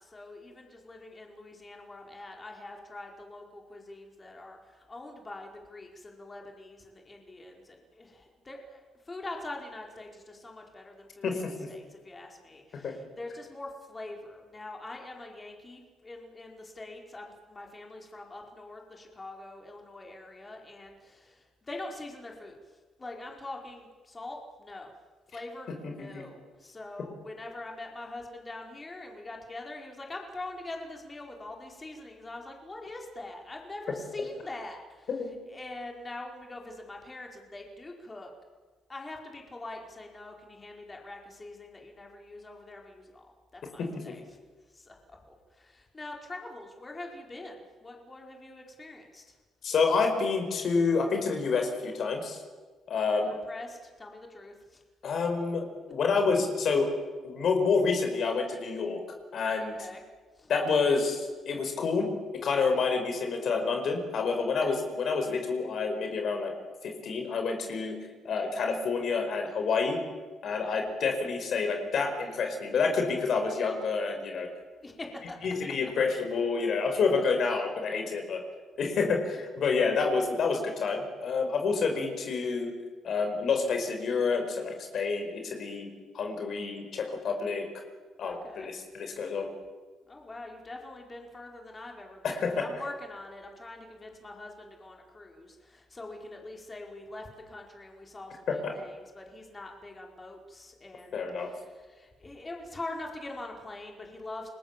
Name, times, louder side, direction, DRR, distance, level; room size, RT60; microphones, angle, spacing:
voice 1, 0.0-11.4 11.7-24.9 25.3-35.1 35.5-38.3 38.9-43.3 43.5-44.2 44.7-49.3 53.1-54.8 59.6-60.0 60.3-60.5 64.6-64.8 70.5-70.8 74.8-75.4 75.8-75.9 88.2-88.7 90.1-104.5, left 2 dB, 25° left, 1 dB, 5.0 m, -44 dB
voice 2, 11.2-11.7 12.8-12.9 25.8-26.2 35.1-35.3 43.8-44.1 49.6-52.4 52.9-53.4 55.0-56.9 57.2-59.0 59.3-59.7 60.5-62.1 62.4-66.5 66.8-68.0 68.3-70.0 70.4-74.5 75.4-78.4 78.8-82.7 83.0-85.9 86.1-87.7 88.2-89.5 92.2-92.6 98.5-98.7 101.1-101.5, left 4 dB, 60° left, 4 dB, 5.2 m, -28 dB
29.5 x 21.0 x 7.6 m, 1.4 s
cardioid pair, 90°, 0 cm